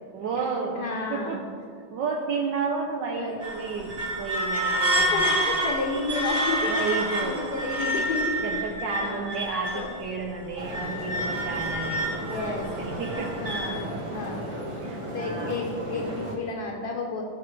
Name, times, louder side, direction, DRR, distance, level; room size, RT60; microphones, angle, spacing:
voice 1, 0.1-1.4 1.9-5.3 6.7-7.5 8.4-12.5 12.8-13.4 14.8-15.6, right 4 dB, 70° right, 0 dB, 1.3 m, -32 dB
voice 2, 0.7-1.4 3.2-3.4 5.0-6.7 7.2-8.7 9.0-9.3 9.7-9.9 12.1-12.7 13.4-14.5 15.1-17.2, left 3 dB, 65° left, -1 dB, 1.5 m, -31 dB
sound 1, 3.4-10.0 10.4-13.7, right 1 dB, 90° right, 3.0 m, -28 dB
sound 2, 10.6-16.4, right 1 dB, 20° right, 0.9 m, -35 dB
16.0 x 6.1 x 3.2 m, 2.3 s
omnidirectional pair, 2.1 m